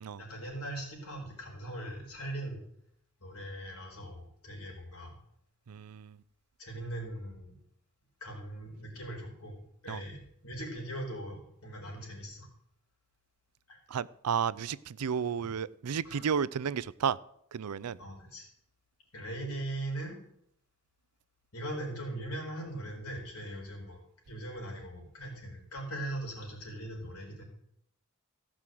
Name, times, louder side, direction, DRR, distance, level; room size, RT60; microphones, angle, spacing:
voice 1, 0.2-2.6 3.2-5.2 6.6-7.5 8.2-12.5 13.7-13.8 15.4-15.5 16.0-16.2 18.0-18.4 19.1-20.2 21.5-24.0 24.3-27.4, right 1 dB, 70° left, 0 dB, 4.5 m, -40 dB
voice 2, 5.7-6.1 9.9-10.0 13.9-17.2 17.5-18.0, right 7 dB, 80° right, 20 dB, 0.5 m, -32 dB
15.5 x 6.2 x 7.7 m, 0.71 s
head